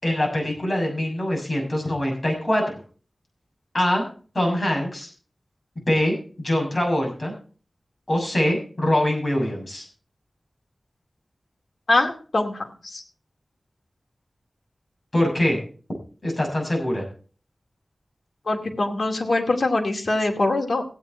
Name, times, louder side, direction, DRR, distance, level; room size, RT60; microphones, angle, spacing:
voice 1, 0.0-2.6 3.7-4.0 4.3-5.1 5.9-7.3 8.1-9.8 15.1-15.6 16.2-17.0, left 1 dB, 35° left, 0 dB, 6.7 m, -23 dB
voice 2, 11.9-13.0 18.5-20.8, left 2 dB, 70° left, 2 dB, 2.3 m, -23 dB
16.0 x 9.0 x 4.4 m, 0.40 s
wide cardioid pair, 85°, 0 cm